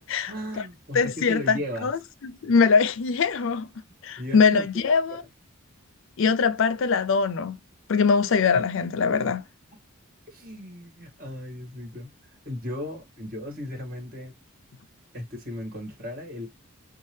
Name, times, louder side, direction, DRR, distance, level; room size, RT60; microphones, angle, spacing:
voice 1, 0.3-1.9 4.2-5.3 8.5-8.6 9.1-9.2 10.3-12.1 12.5-14.3 15.1-16.5, left 1 dB, 45° right, 1.9 m, -36 dB
voice 2, 0.9-3.7 4.0-5.2 6.2-7.6 7.9-9.4, left 5 dB, 60° left, 0.4 m, -22 dB
5.4 x 2.2 x 3.1 m
head